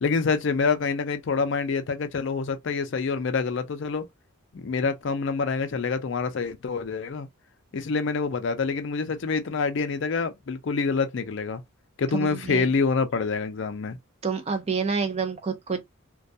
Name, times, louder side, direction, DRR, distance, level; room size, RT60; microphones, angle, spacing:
voice 1, 0.0-4.0 4.5-7.3 7.7-11.6 12.0-14.0, left 4 dB, 55° left, 0.4 m, -26 dB
voice 2, 12.1-12.6 14.2-15.8, right 5 dB, 30° right, 0.4 m, -28 dB
2.2 x 2.2 x 2.6 m
head